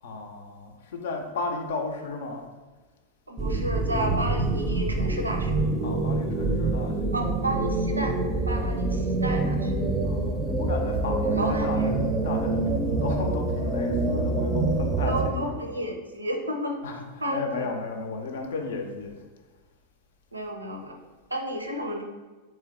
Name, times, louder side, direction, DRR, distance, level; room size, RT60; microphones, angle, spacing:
voice 1, 0.0-2.5 5.8-7.3 10.0-15.7 16.8-19.3, left 3 dB, 60° left, 4 dB, 0.5 m, -34 dB
voice 2, 3.3-5.5 7.1-8.2 8.5-9.9 11.3-11.8 15.1-16.8 17.2-17.7 20.3-21.0 21.3-22.0, right 1 dB, 80° right, 3 dB, 0.5 m, -32 dB
sound 1, 3.4-15.3, right 2 dB, 25° right, 0.5 m, -26 dB
3.3 x 3.1 x 3.6 m, 1.3 s
figure-of-eight pair, 90°, 0 cm